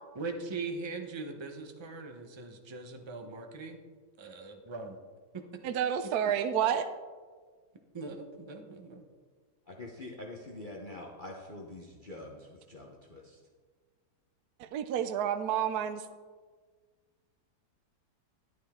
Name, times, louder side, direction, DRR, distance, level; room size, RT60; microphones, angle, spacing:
voice 1, 0.2-3.8 4.2-5.0 5.3-5.6 6.0-6.1 7.9-9.0, right 3 dB, 25° right, 4 dB, 0.6 m, -40 dB
voice 2, 5.6-6.9 14.6-16.0, right 9 dB, 70° right, 9 dB, 1.0 m, -29 dB
voice 3, 9.7-13.4, left 2 dB, 35° left, -1 dB, 0.9 m, -45 dB
11.5 x 9.7 x 3.6 m, 1.5 s
omnidirectional pair, 1.9 m